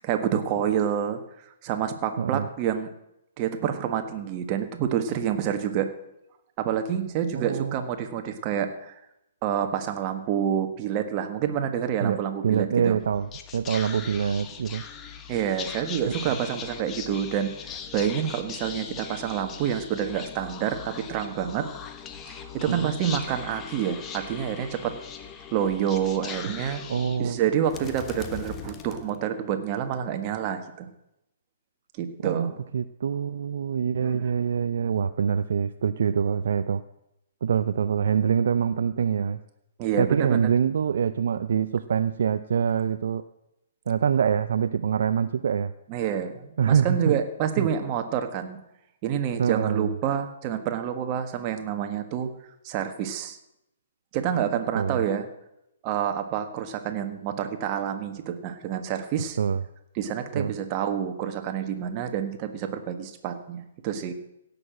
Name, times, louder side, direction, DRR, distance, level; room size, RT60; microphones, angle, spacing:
voice 1, 0.0-1.2 1.6-2.9 3.4-5.9 6.6-8.9 9.4-13.0 15.3-17.5 17.9-21.7 22.3-24.9 25.5-26.8 27.2-30.9 32.0-32.6 34.0-34.3 39.8-40.5 45.9-48.6 49.0-52.3 52.6-53.4 54.1-55.2 55.8-59.4 59.9-64.1, right 9 dB, 35° right, 7 dB, 1.6 m, -28 dB
voice 2, 2.2-2.5 7.3-7.8 12.0-14.8 16.3-16.4 22.7-22.9 26.9-27.4 32.2-36.8 37.4-39.4 40.0-43.2 43.9-45.7 46.6-47.1 47.6-47.7 49.4-49.9 54.7-55.0 59.4-59.6 60.3-60.5, right 7 dB, 60° right, 12 dB, 0.5 m, -25 dB
Whispering, 13.0-29.6, left 7 dB, 20° left, 1.2 m, -40 dB
17.0 x 6.9 x 7.6 m, 0.86 s
figure-of-eight pair, 125°, 0 cm